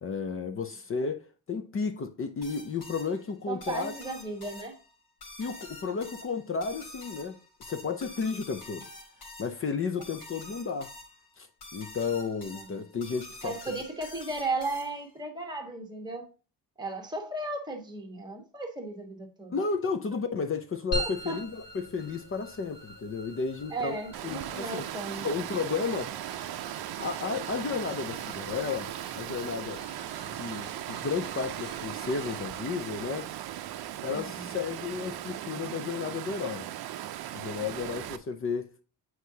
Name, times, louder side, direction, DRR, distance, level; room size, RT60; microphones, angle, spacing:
voice 1, 0.0-3.9 5.4-7.4 7.7-8.9 9.4-10.9 11.4-11.5 11.7-13.6 19.5-24.0 24.2-24.8 25.2-26.1 27.0-29.8 30.4-33.3 34.0-36.7 37.3-38.7, left 5 dB, 30° left, 0.5 m, -33 dB
sound 1, 2.4-15.2, left 2 dB, 65° left, 2.9 m, -47 dB
voice 2, 3.5-4.8 12.6-12.8 13.4-16.3 16.8-19.6 21.0-21.4 23.7-25.3 34.1-34.5, right 2 dB, 10° right, 1.2 m, -35 dB
sound 2, 20.9-35.6, right 1 dB, 90° left, 2.7 m, -44 dB
Water, 24.1-38.2, right 12 dB, 60° right, 0.6 m, -38 dB
8.0 x 4.7 x 2.7 m
cardioid pair, 180°, 42 cm